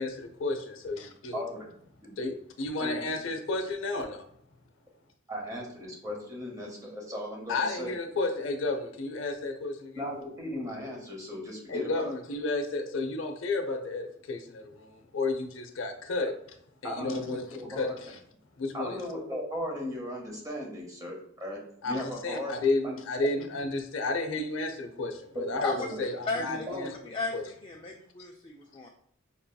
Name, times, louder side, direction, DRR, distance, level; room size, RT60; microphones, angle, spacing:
voice 1, 0.0-1.4 2.2-4.2 7.5-10.0 11.7-16.3 16.8-17.4 17.7-18.2 18.6-19.0 21.8-26.9 27.3-27.4, left 3 dB, 70° left, 5 dB, 0.6 m, -32 dB
voice 2, 1.3-1.7 2.0-2.2 2.8-2.9 3.2-3.3 5.3-7.9 10.0-12.1 16.8-18.0 18.7-22.6 22.8-23.4 25.3-25.4 25.8-25.9 26.3-26.9, left 1 dB, 15° right, -1 dB, 0.9 m, -37 dB
voice 3, 26.3-26.7 27.0-28.9, left 3 dB, 25° left, 0 dB, 0.3 m, -34 dB
5.3 x 2.7 x 2.3 m, 0.69 s
head